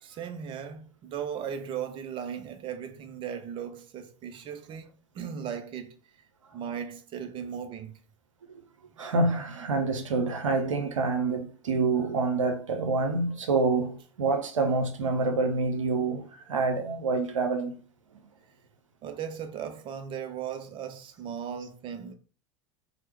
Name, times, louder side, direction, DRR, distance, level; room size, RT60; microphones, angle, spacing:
voice 1, 0.0-6.3 6.5-8.0 8.9-9.1 19.0-22.1, right 8 dB, 30° right, 0.4 m, -37 dB
voice 2, 9.0-17.7, right 3 dB, 80° right, 0.6 m, -27 dB
2.9 x 2.1 x 3.3 m
figure-of-eight pair, 80°, 16 cm